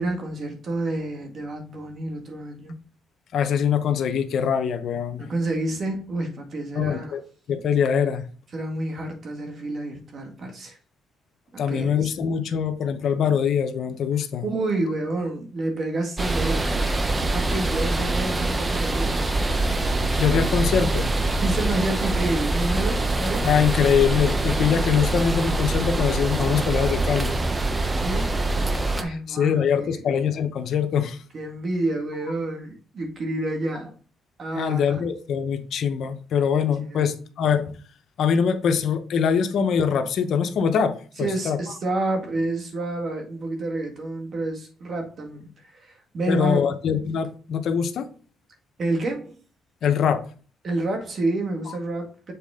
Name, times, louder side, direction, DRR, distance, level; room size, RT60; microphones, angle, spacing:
voice 1, 0.0-2.7 5.2-7.1 8.5-10.8 11.5-12.1 14.4-16.7 17.3-19.2 21.4-23.5 28.0-28.4 29.0-30.0 31.3-33.9 34.4-35.0 36.5-36.6 36.9-37.1 41.2-45.5 45.7-46.6 48.8-49.4 50.6-52.3, right 2 dB, 50° right, 1.9 m, -29 dB
voice 2, 3.3-5.3 6.7-7.2 7.5-8.2 11.6-14.4 20.2-21.1 23.4-27.3 29.1-31.2 34.5-37.7 38.2-40.9 41.2-41.6 46.3-48.1 49.8-50.2 51.7-51.8, left 7 dB, 70° left, 0.8 m, -23 dB
sound 1, 16.2-29.0, right 2 dB, 25° right, 0.8 m, -24 dB
7.1 x 4.2 x 3.7 m
cardioid pair, 90°, 0 cm